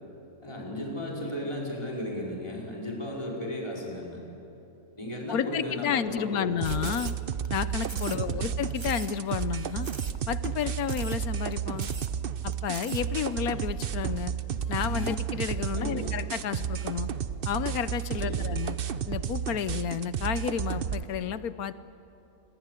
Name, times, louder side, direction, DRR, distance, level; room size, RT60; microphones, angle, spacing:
voice 1, 0.4-4.2 5.0-6.7 8.1-8.4 15.7-16.1 18.2-18.5, left 1 dB, 20° left, -3 dB, 5.1 m, -35 dB
voice 2, 5.3-7.1 7.5-9.9 10.3-11.9 12.4-14.3 14.7-17.1 17.5-18.8 19.1-21.7, left 8 dB, 85° left, 14 dB, 1.3 m, -31 dB
sound 1, 6.6-7.5 7.8-8.5 8.8-9.1 9.4-9.5 9.8-10.2 10.4-10.5 10.8-11.2 11.5-11.6 11.8-12.1 12.5-13.0, right 4 dB, 25° right, 0.8 m, -42 dB
sound 2, 6.6-21.0, right 8 dB, 50° right, 0.8 m, -32 dB
sound 3, 14.5-15.2, left 7 dB, 60° left, 1.4 m, -36 dB
27.5 x 21.5 x 8.3 m, 2.9 s
omnidirectional pair, 1.5 m